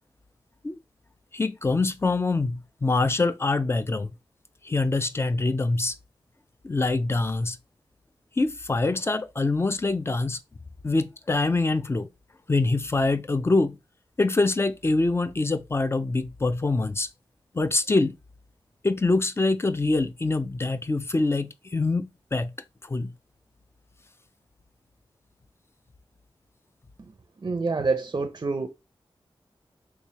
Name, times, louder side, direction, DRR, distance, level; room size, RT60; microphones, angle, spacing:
voice 1, 1.3-4.1 4.6-5.9 6.6-7.6 8.4-10.4 10.8-12.1 12.5-13.8 14.2-17.1 17.5-18.2 18.8-22.5 22.8-23.1, left 3 dB, 25° left, 0.4 m, -24 dB
voice 2, 27.0-28.7, right 4 dB, 40° right, 0.4 m, -28 dB
3.6 x 3.1 x 2.8 m
wide cardioid pair, 95°, 9 cm